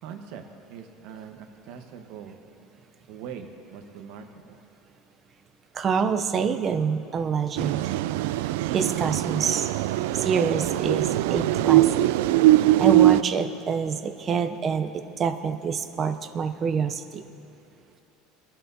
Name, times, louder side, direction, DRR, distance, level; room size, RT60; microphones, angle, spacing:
voice 1, 0.0-0.4 0.7-2.4 3.1-4.6, right 7 dB, 55° right, 5 dB, 1.1 m, -42 dB
voice 2, 5.7-7.9 8.7-9.7 10.1-11.9 12.8-17.2, right 6 dB, 25° right, 6 dB, 0.5 m, -26 dB
sound 1, 7.6-13.2, right 15 dB, 80° right, 0.3 m, -21 dB
23.5 x 11.5 x 2.7 m, 2.9 s
cardioid pair, 170°, 0 cm